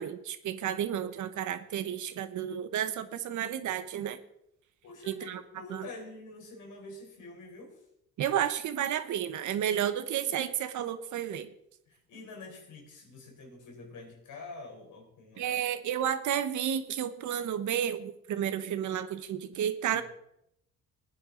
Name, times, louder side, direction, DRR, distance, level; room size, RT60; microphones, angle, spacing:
voice 1, 0.0-4.2 5.1-5.4 5.7-5.8 8.2-11.5 15.4-20.0, right 10 dB, 75° right, 11 dB, 1.2 m, -31 dB
voice 2, 4.8-7.8 11.9-15.6 19.9-20.0, left 2 dB, 80° left, 2 dB, 4.3 m, -46 dB
17.0 x 9.7 x 3.9 m, 0.78 s
cardioid pair, 90°, 30 cm